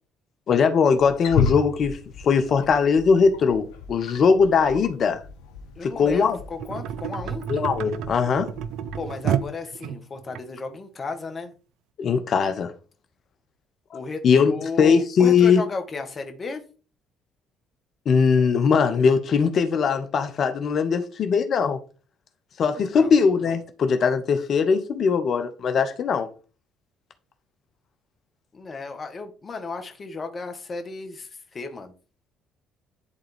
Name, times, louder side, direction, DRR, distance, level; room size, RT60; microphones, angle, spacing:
voice 1, 0.5-2.0 2.2-5.2 5.8-6.4 7.5-8.5 12.0-12.7 14.2-15.6 18.1-21.8 22.6-26.3, left 5 dB, 55° left, 0.9 m, -20 dB
Wild animals, 0.9-9.4, left 5 dB, 80° left, 1.0 m, -33 dB
voice 2, 5.8-7.4 8.9-11.5 13.9-16.6 22.9-23.2 28.5-31.9, left 3 dB, 40° left, 1.5 m, -34 dB
sound 1, 6.6-10.4 11.1-11.2, right 9 dB, 70° right, 0.4 m, -30 dB
11.0 x 3.7 x 3.5 m
hypercardioid pair, 55°, 0 cm